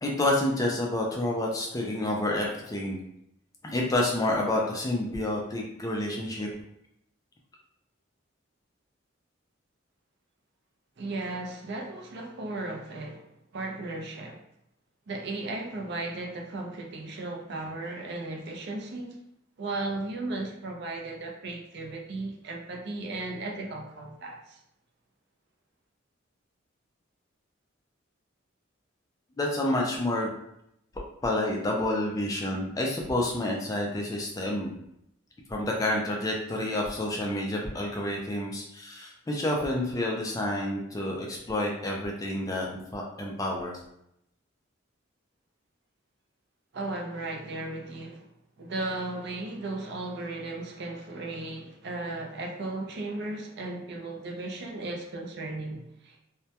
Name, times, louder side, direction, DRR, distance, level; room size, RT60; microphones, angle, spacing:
voice 1, 0.0-3.0 3.6-6.5 29.4-30.3 31.2-34.7 35.5-43.7, left 1 dB, 15° left, -1 dB, 0.3 m, -29 dB
voice 2, 11.0-13.3 13.5-14.4 15.1-19.2 19.6-24.6 46.7-48.3 48.6-56.2, right 2 dB, 55° right, 1 dB, 0.4 m, -36 dB
2.1 x 2.1 x 2.8 m, 0.78 s
head